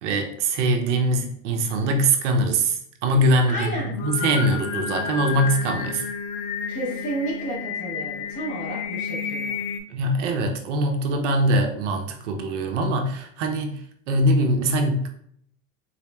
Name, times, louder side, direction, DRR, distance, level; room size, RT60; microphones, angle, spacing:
voice 1, 0.0-6.0 9.9-13.8 14.1-15.1, right 1 dB, 55° right, 4 dB, 0.6 m, -22 dB
voice 2, 3.5-4.0 6.7-9.6, right 1 dB, 20° left, -4 dB, 0.7 m, -31 dB
Singing, 3.8-9.8, left 6 dB, 85° left, 0.8 m, -31 dB
4.1 x 2.9 x 2.2 m, 0.65 s
supercardioid pair, 175°, 42 cm